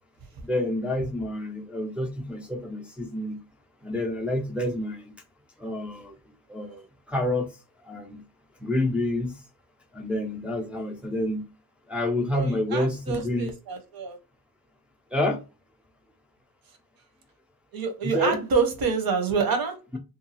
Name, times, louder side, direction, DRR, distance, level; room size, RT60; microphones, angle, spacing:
voice 1, 0.4-3.4 3.8-5.1 5.6-6.1 6.5-6.8 7.1-7.5 7.8-8.2 8.6-9.4 9.9-11.5 11.9-13.5 15.1-15.4 18.0-18.4, left 1 dB, 5° right, 0.3 m, -28 dB
voice 2, 12.3-14.2 17.7-20.0, right 5 dB, 70° right, 0.8 m, -27 dB
2.7 x 2.3 x 2.7 m
wide cardioid pair, 170°, 37 cm